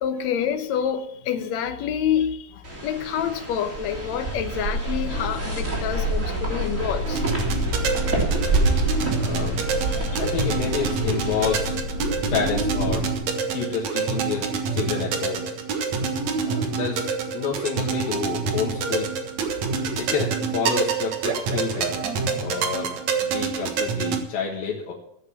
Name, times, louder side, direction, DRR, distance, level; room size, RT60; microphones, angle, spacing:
voice 1, 0.0-7.2 9.9-10.1 15.8-15.9, left 8 dB, 65° left, 2.0 m, -27 dB
sound 1, 2.6-11.6, right 2 dB, 20° right, 3.1 m, -28 dB
sound 2, 5.0-13.1, left 2 dB, 40° left, 2.4 m, -31 dB
sound 3, 7.1-24.2, right 5 dB, 60° right, 2.4 m, -27 dB
voice 2, 9.2-9.6 10.2-11.8 12.3-13.1 13.5-15.4 16.4-17.0 17.3-19.1 20.0-22.0 22.4-24.9, left 6 dB, 85° left, 3.5 m, -29 dB
14.5 x 8.6 x 7.3 m
omnidirectional pair, 4.1 m